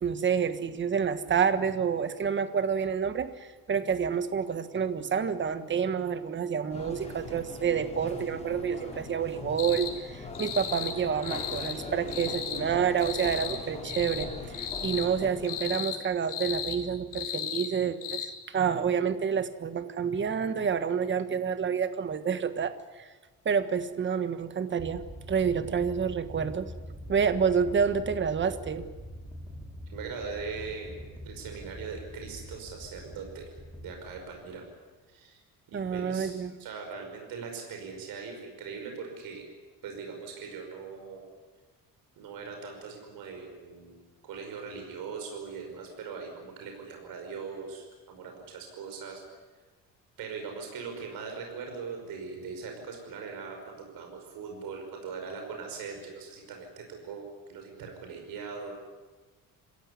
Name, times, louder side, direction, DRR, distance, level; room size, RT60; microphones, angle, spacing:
voice 1, 0.0-23.1 23.4-25.0 25.3-26.7 27.1-28.9 35.7-36.5, right 7 dB, 35° right, 11 dB, 1.4 m, -28 dB
sound 1, 6.7-15.8, left 2 dB, 20° left, 4.1 m, -41 dB
sound 2, 9.6-9.9 10.3-11.0 11.2-11.8 12.1-12.6 13.0-13.6 13.8-14.3 14.5-15.1 15.4-16.0 16.3-16.8 17.1-17.7 18.0-18.3, left 9 dB, 65° left, 3.9 m, -35 dB
sound 3, 24.8-34.9, equal, 5° right, 2.3 m, -44 dB
voice 2, 29.9-34.6 35.1-35.4 35.7-39.4 39.8-41.2 42.2-44.0 44.2-49.2 50.2-57.2 57.5-58.7, right 5 dB, 75° right, 3 dB, 5.6 m, -40 dB
27.5 x 16.0 x 9.9 m, 1.3 s
cardioid pair, 145°, 34 cm